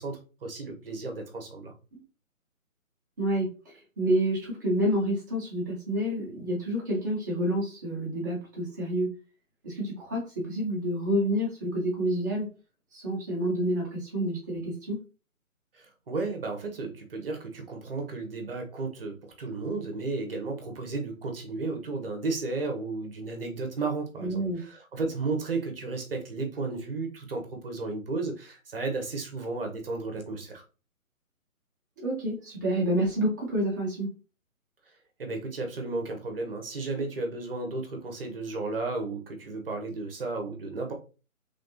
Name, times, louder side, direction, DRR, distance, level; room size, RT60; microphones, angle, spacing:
voice 1, 0.0-1.7 15.7-30.6 35.2-40.9, right 3 dB, 40° right, 3 dB, 1.1 m, -33 dB
voice 2, 3.2-9.1 9.6-12.5 12.9-15.0 24.2-24.6 32.0-34.1, right 1 dB, 15° right, -4 dB, 0.9 m, -28 dB
3.5 x 3.4 x 2.7 m, 0.34 s
figure-of-eight pair, 150°, 42 cm